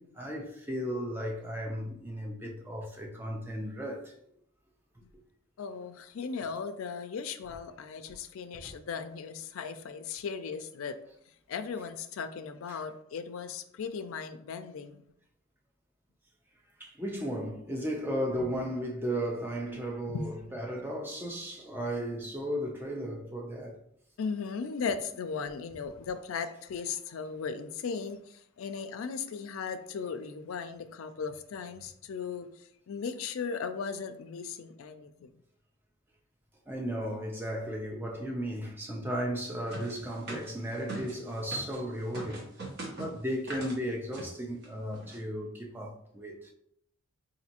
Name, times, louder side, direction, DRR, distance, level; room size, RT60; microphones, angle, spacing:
voice 1, 0.0-4.1 8.1-8.2 8.6-8.7 12.7-12.8 16.8-23.8 36.7-42.4 42.9-46.5, equal, 10° right, 0.5 m, -35 dB
voice 2, 5.6-11.0 11.5-15.0 20.1-20.3 24.2-32.5 32.9-35.3, left 5 dB, 75° left, 0.4 m, -37 dB
sound 1, 39.7-41.8 42.1-43.8 44.1-44.3 44.6-44.7 44.9-45.2, right 2 dB, 50° right, 0.9 m, -41 dB
4.1 x 2.6 x 2.8 m
head